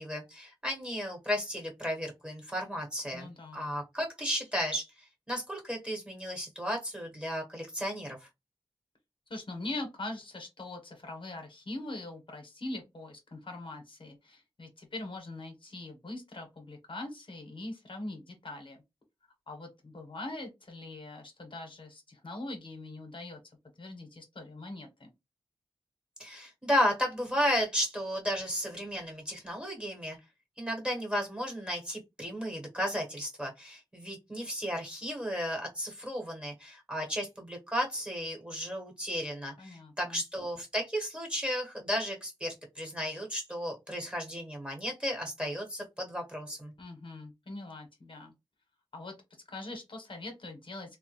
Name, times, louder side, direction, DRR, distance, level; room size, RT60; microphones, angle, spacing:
voice 1, 0.0-4.9 5.3-8.3 26.2-30.2 30.6-46.7, equal, 10° right, 1 dB, 1.3 m, -34 dB
voice 2, 3.1-3.6 9.3-18.8 19.5-23.4 23.8-25.1 39.6-40.2 46.8-48.3 48.9-49.1 49.5-51.0, left 2 dB, 60° left, 4 dB, 1.0 m, -42 dB
3.4 x 2.1 x 3.1 m, 0.22 s
wide cardioid pair, 75°, 10 cm